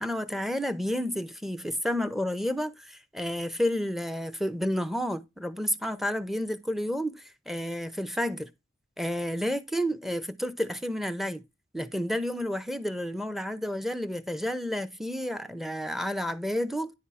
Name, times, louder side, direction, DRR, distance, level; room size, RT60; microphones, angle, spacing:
voice 1, 0.0-8.5 9.0-11.4 11.7-16.9, equal, ahead, 0.6 m, -30 dB
10.5 x 3.6 x 5.5 m
head